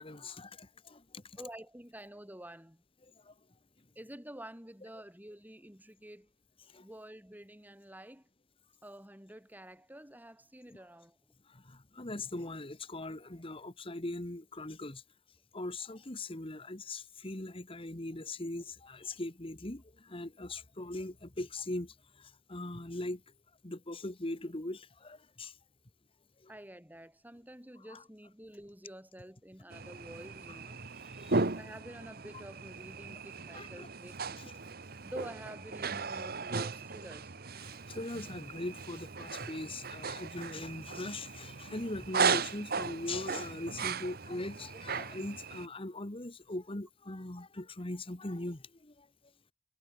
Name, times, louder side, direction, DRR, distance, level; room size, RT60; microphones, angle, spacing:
voice 1, 0.0-1.2 3.3-3.4 6.7-6.8 11.5-15.0 15.5-23.2 23.6-25.5 26.4-26.5 27.9-28.0 31.2-31.3 33.5-33.9 34.4-34.5 37.6-49.1, left 2 dB, 30° left, 1.7 m, -40 dB
voice 2, 1.4-2.8 3.9-6.3 6.8-8.3 8.8-11.2 26.5-30.8 31.5-34.5 35.0-37.3, right 1 dB, 10° right, 6.7 m, -49 dB
sound 1, 29.7-45.7, right 4 dB, 55° right, 1.4 m, -37 dB
head